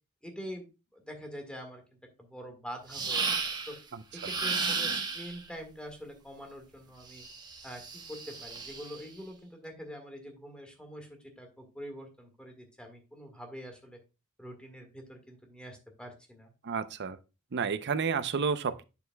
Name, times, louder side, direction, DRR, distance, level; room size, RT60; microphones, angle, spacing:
voice 1, 0.2-0.7 0.9-1.8 2.2-3.8 4.1-7.3 7.6-14.0 14.4-16.5, equal, 5° left, 1.6 m, -45 dB
sound 1, 2.9-3.8 4.2-5.4 7.1-9.0, right 4 dB, 20° right, 1.1 m, -33 dB
voice 2, 16.6-17.2 17.5-18.8, right 5 dB, 50° right, 0.6 m, -30 dB
8.5 x 7.0 x 2.2 m
head